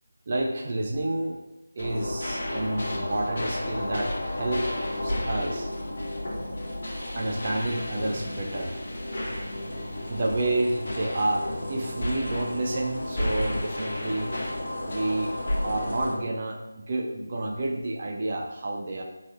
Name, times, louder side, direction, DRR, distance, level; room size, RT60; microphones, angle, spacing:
voice 1, 0.3-1.4 1.7-4.6 5.0-5.7 7.1-8.8 9.7-14.3 14.9-15.3 15.6-19.0, right 2 dB, 35° right, 1 dB, 0.4 m, -29 dB
sound 1, 1.8-16.2, left 1 dB, 50° left, 0.8 m, -32 dB
4.0 x 2.5 x 3.7 m, 0.96 s
figure-of-eight pair, 160°, 0 cm